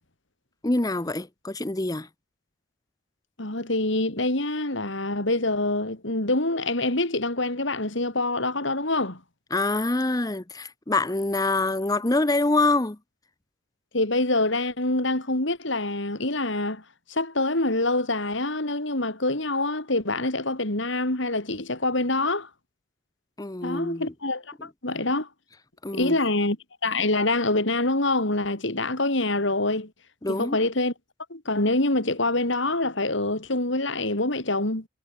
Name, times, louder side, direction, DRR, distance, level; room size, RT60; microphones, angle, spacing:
voice 1, 0.6-2.1 9.5-13.0 23.4-24.1 24.6-24.7 25.8-26.2 30.2-30.6, left 2 dB, 20° left, 0.8 m, -25 dB
voice 2, 3.4-9.2 13.9-16.8 17.1-22.5 23.6-25.3 25.9-26.6 26.8-29.9 30.3-30.9 31.3-34.9, left 2 dB, 60° left, 3.4 m, -25 dB
head